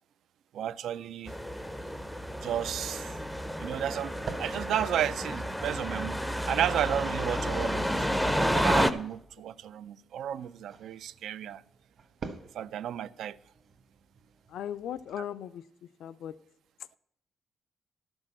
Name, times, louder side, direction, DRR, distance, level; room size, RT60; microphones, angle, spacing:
voice 1, 0.5-1.4 2.4-3.2 3.6-6.2 6.5-11.6 12.5-13.4 15.2-15.3, right 10 dB, 85° right, 0.3 m, -33 dB
sound 1, 1.3-8.9, equal, ahead, 0.4 m, -31 dB
sound 2, 2.8-15.2, right 5 dB, 45° right, 1.0 m, -49 dB
voice 2, 14.5-15.6 16.0-16.3, left 10 dB, 85° left, 0.4 m, -37 dB
11.5 x 6.2 x 7.6 m
wide cardioid pair, 175°, 0 cm